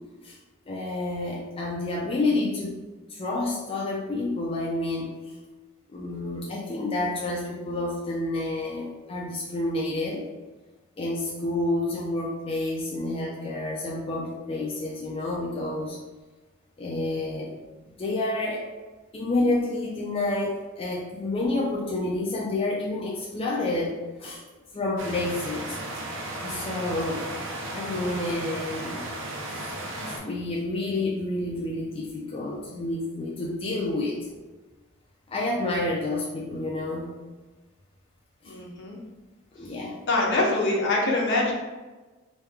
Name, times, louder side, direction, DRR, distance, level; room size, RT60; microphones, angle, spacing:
voice 1, 0.7-2.8 3.1-5.3 5.9-10.3 11.0-16.0 16.8-17.5 18.0-18.7 19.1-24.4 24.7-25.8 26.4-27.3 27.7-29.1 29.5-34.3 35.3-37.2 38.4-38.6 39.5-40.0, left 2 dB, 25° left, -4 dB, 0.4 m, -29 dB
sound 1, 25.0-30.2, right 1 dB, 65° right, 0.6 m, -35 dB
voice 2, 38.5-39.0 40.1-41.5, left 2 dB, 60° left, -2 dB, 0.8 m, -24 dB
3.1 x 2.2 x 3.5 m, 1.2 s
head